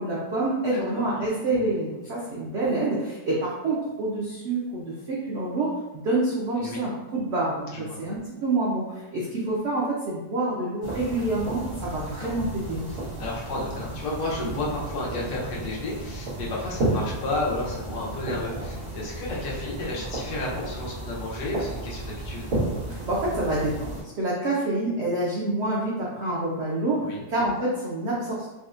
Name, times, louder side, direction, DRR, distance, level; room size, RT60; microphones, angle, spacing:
voice 1, 0.0-12.9 22.9-28.5, right 2 dB, 90° right, -5 dB, 0.6 m, -27 dB
voice 2, 0.7-1.1 6.6-6.8 7.7-8.0 12.1-12.3 12.9-22.5 27.0-27.2, left 2 dB, 85° left, -4 dB, 1.4 m, -32 dB
sound 1, 10.8-24.0, right 2 dB, 45° right, 1.3 m, -33 dB
3.9 x 2.1 x 2.4 m, 1.1 s
omnidirectional pair, 1.8 m